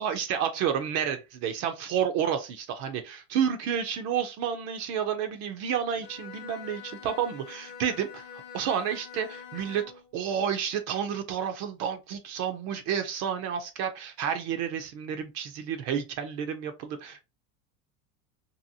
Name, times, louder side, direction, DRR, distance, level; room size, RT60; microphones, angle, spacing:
voice 1, 0.0-8.3 8.5-9.8 10.1-17.2, right 8 dB, 45° right, 0.5 m, -30 dB
Bowed string instrument, 5.9-10.1, left 7 dB, 40° left, 1.0 m, -45 dB
2.8 x 2.7 x 2.6 m
cardioid pair, 155°, 39 cm